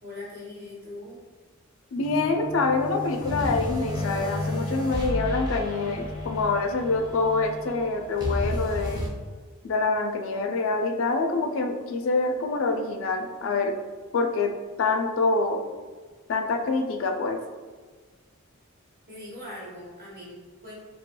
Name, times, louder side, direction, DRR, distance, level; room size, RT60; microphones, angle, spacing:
voice 1, 0.0-1.2 19.1-20.7, left 1 dB, 45° right, -5 dB, 1.1 m, -41 dB
voice 2, 1.9-9.0 9.6-13.7 14.1-14.5 14.8-15.6 16.3-17.4, left 3 dB, 65° left, 5 dB, 0.4 m, -26 dB
sound 1, 2.0-9.1, left 1 dB, 20° right, 0.6 m, -32 dB
3.1 x 2.7 x 2.2 m, 1.4 s
head